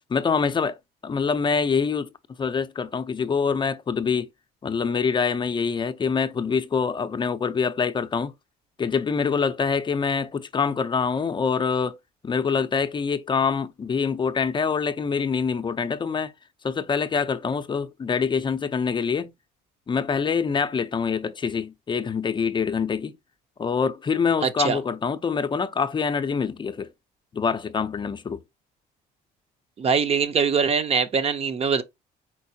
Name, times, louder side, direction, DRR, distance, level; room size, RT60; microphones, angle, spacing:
voice 1, 0.1-0.8 1.0-2.1 2.4-4.3 4.6-8.3 8.8-12.0 12.2-16.3 16.6-19.3 19.9-23.2 23.6-26.9 27.3-28.4, left 5 dB, 30° left, 0.6 m, -25 dB
voice 2, 24.4-24.8 29.8-31.8, right 6 dB, 35° right, 0.7 m, -22 dB
4.5 x 4.2 x 2.7 m
cardioid pair, 110°, 17 cm